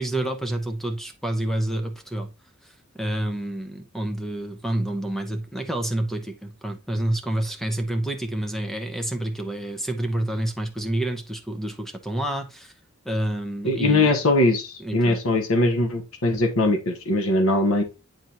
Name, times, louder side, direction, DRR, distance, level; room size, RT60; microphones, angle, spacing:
voice 1, 0.0-2.3 2.6-12.7 13.0-14.3 14.8-15.2, right 1 dB, ahead, 0.9 m, -28 dB
voice 2, 13.6-17.8, left 2 dB, 80° left, 1.3 m, -21 dB
9.1 x 4.0 x 2.9 m
head